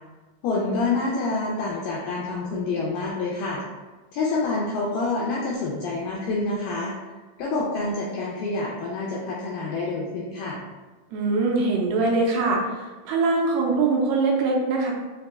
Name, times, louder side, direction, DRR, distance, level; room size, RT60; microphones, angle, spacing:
voice 1, 0.4-3.6 4.1-7.0 7.4-10.6, left 3 dB, 90° left, -4 dB, 1.9 m, -27 dB
voice 2, 11.1-12.6 13.1-14.9, right 3 dB, 85° right, -2 dB, 2.6 m, -22 dB
6.2 x 2.9 x 2.2 m, 1.2 s
omnidirectional pair, 4.5 m